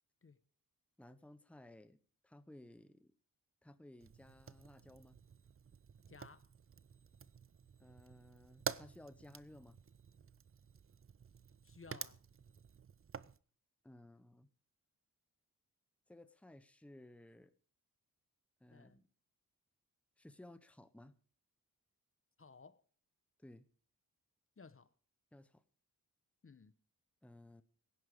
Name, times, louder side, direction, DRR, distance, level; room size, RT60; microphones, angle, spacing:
voice 1, 1.0-3.1 3.6-5.2 7.8-9.8 13.8-14.5 16.1-17.5 18.6-19.0 20.2-21.1 23.4-23.7 25.3-25.6 27.2-27.6, left 1 dB, 5° left, 1.0 m, -58 dB
Fire, 4.0-13.4, right 6 dB, 40° right, 0.6 m, -50 dB
voice 2, 6.1-6.5 11.6-12.2 18.7-19.0 22.4-22.8 24.6-24.9 26.4-26.7, left 4 dB, 40° left, 1.0 m, -58 dB
16.5 x 9.7 x 5.0 m
cardioid pair, 75°, 35 cm